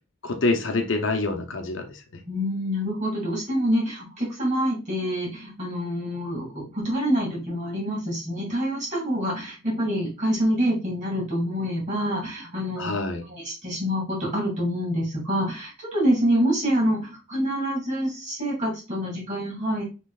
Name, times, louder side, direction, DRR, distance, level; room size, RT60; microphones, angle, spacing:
voice 1, 0.2-2.0 12.8-13.2, left 2 dB, 65° left, 0.7 m, -26 dB
voice 2, 2.3-12.9 13.3-19.8, equal, 40° right, 2.4 m, -26 dB
6.3 x 3.2 x 2.4 m
head